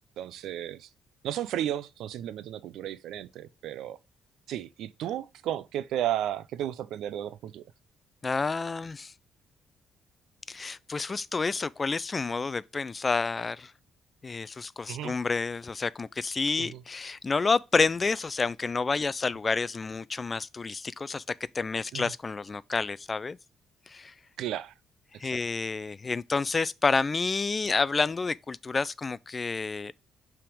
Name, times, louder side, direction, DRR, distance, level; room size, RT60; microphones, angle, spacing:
voice 1, 0.2-0.9 1.2-4.0 4.5-7.6 14.9-15.1 16.6-16.8 21.9-22.1 24.4-24.7 25.2-25.4, right 11 dB, 85° right, 0.4 m, -33 dB
voice 2, 8.2-9.1 10.5-13.7 14.2-21.2 21.5-23.4 23.9-24.1 25.2-29.9, left 4 dB, 30° left, 0.3 m, -29 dB
5.8 x 3.6 x 4.9 m
cardioid pair, 90°, 0 cm